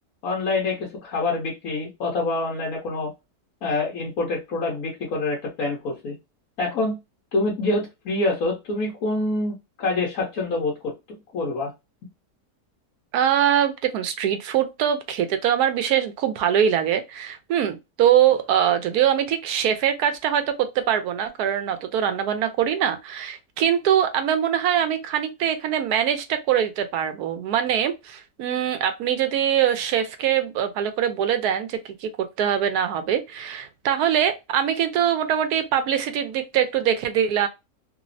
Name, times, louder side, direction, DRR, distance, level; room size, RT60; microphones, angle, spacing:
voice 1, 0.2-3.1 3.6-6.1 6.6-6.9 7.3-10.9 11.3-11.7, left 2 dB, 70° left, 1.4 m, -26 dB
voice 2, 13.1-37.5, right 9 dB, 80° right, 1.1 m, -23 dB
3.3 x 2.0 x 2.5 m
omnidirectional pair, 1.6 m